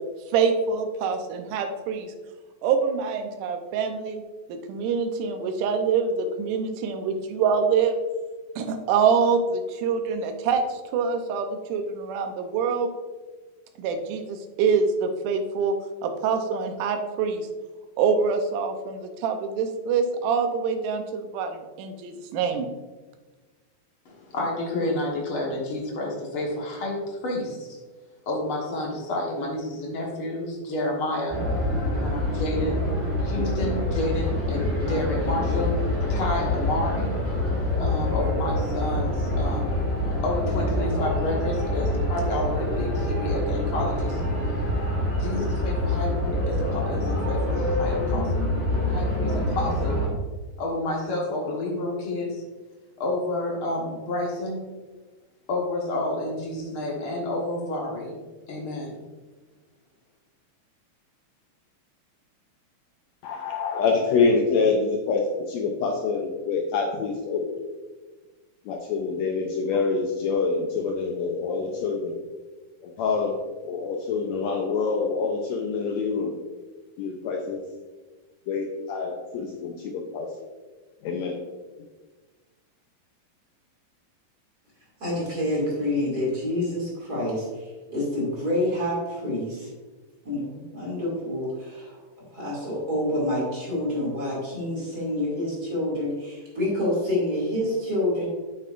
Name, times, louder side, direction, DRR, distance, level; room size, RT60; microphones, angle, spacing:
voice 1, 0.3-2.1 2.6-4.2 4.5-8.0 8.6-12.9 13.8-15.7 16.0-17.5 18.0-22.7, right 5 dB, 75° right, 5 dB, 2.2 m, -25 dB
voice 2, 24.0-27.8 28.2-31.4 32.0-32.8 33.2-35.7 36.1-37.1 37.8-39.7 40.2-44.2 45.2-48.4 48.8-50.0 50.6-52.4 53.0-54.6 55.5-58.1 58.5-58.9, left 1 dB, 50° left, -2 dB, 1.8 m, -30 dB
sound 1, 31.3-50.1, left 1 dB, 10° left, 0.9 m, -26 dB
voice 3, 63.2-67.6 68.6-72.1 72.8-73.4 73.6-76.4 77.0-77.6 78.5-80.3 81.0-81.4, left 4 dB, 85° left, 1 dB, 1.6 m, -26 dB
voice 4, 85.0-89.7 90.2-92.0 92.3-98.3, left 1 dB, 30° right, -5 dB, 2.5 m, -27 dB
8.7 x 7.8 x 2.5 m, 1.3 s
omnidirectional pair, 3.9 m